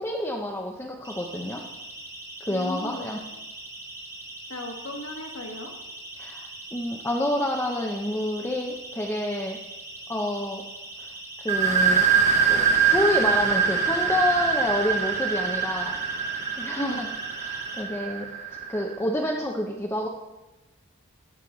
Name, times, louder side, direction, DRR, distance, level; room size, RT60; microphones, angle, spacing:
voice 1, 0.0-1.6 2.4-3.2 6.2-9.6 10.1-10.6 11.0-11.1 11.4-12.0 12.5-15.9 16.6-17.1 17.4-18.3 18.7-20.1, left 1 dB, 10° left, 0 dB, 0.6 m, -28 dB
Siren, 1.0-17.8, right 1 dB, 15° right, 1.1 m, -41 dB
voice 2, 2.5-3.1 4.5-5.7 16.8-17.0, left 1 dB, 65° left, 2 dB, 1.5 m, -37 dB
sound 1, 11.5-18.9, right 6 dB, 30° right, 0.7 m, -24 dB
13.5 x 6.4 x 3.9 m, 1.1 s
head